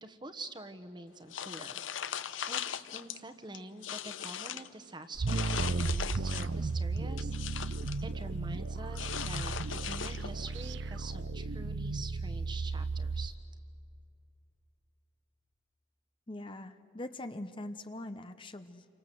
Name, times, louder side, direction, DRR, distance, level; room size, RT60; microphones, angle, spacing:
voice 1, 0.0-1.8 2.5-13.3, right 2 dB, 25° right, 9 dB, 1.3 m, -46 dB
sound 1, 1.3-3.2 3.5-4.7 5.3-6.6 7.0-8.0 8.9-10.5, left 8 dB, 85° left, 0.9 m, -39 dB
sound 2, 5.1-13.3, right 3 dB, 70° right, 0.6 m, -34 dB
voice 2, 16.3-18.8, left 1 dB, 25° left, 9 dB, 0.8 m, -42 dB
29.0 x 24.5 x 7.8 m, 2.7 s
head